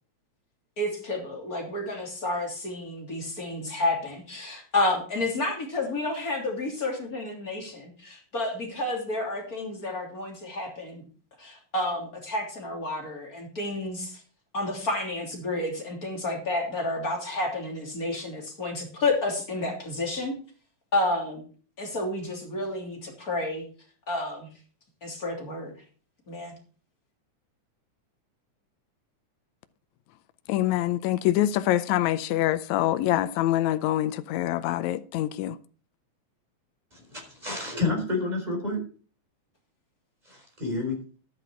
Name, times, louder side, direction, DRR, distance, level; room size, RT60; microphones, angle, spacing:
voice 1, 0.8-11.0 11.4-14.2 14.5-20.3 20.9-21.4 21.8-23.6 24.1-24.5 25.0-25.7 26.3-26.5, left 2 dB, 30° left, 3.4 m, -30 dB
voice 2, 30.5-35.6, left 13 dB, 80° left, 1.9 m, -25 dB
voice 3, 36.9-38.8 40.2-41.0, left 3 dB, 15° right, 4.3 m, -29 dB
11.5 x 10.5 x 4.5 m
omnidirectional pair, 3.3 m